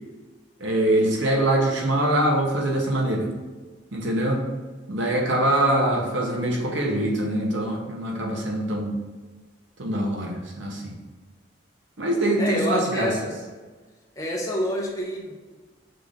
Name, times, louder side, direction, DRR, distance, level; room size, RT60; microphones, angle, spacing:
voice 1, 0.6-3.3 3.9-4.4 4.9-8.9 9.8-11.0 12.0-13.1, right 1 dB, 70° right, 0 dB, 0.8 m, -23 dB
voice 2, 12.4-13.3 14.2-15.5, equal, 15° left, -2 dB, 0.6 m, -28 dB
5.7 x 2.5 x 3.4 m, 1.3 s
head